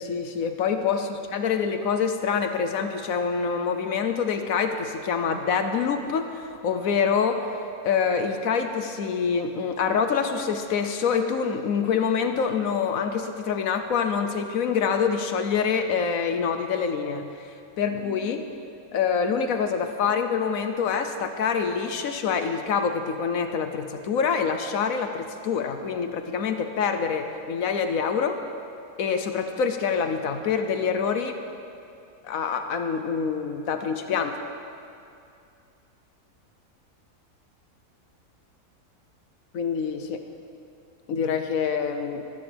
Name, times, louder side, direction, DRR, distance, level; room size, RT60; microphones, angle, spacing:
voice 1, 0.0-18.5 18.9-28.4 29.0-31.4 32.2-34.4 39.5-40.2 41.1-42.2, left 6 dB, 65° left, 7 dB, 1.1 m, -26 dB
14.5 x 13.5 x 3.4 m, 2.5 s
omnidirectional pair, 1.6 m